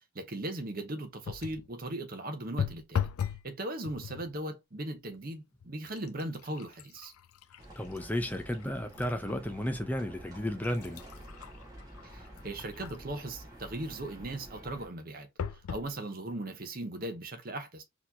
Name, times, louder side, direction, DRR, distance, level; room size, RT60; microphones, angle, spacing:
voice 1, 0.1-3.1 3.4-7.1 12.0-17.8, right 1 dB, 40° right, 0.7 m, -38 dB
sound 1, 1.2-1.7 2.6-3.5 3.8-4.3 5.1-5.2 5.6-9.2 9.7-9.8 10.4-13.2 15.4-15.9 16.6-16.7 16.9-17.0, left 7 dB, 80° left, 0.4 m, -38 dB
Livestock farm animals working animals, 7.6-14.9, right 1 dB, 15° right, 1.3 m, -49 dB
voice 2, 7.8-11.0, left 1 dB, 5° left, 0.5 m, -33 dB
4.0 x 2.9 x 2.7 m
head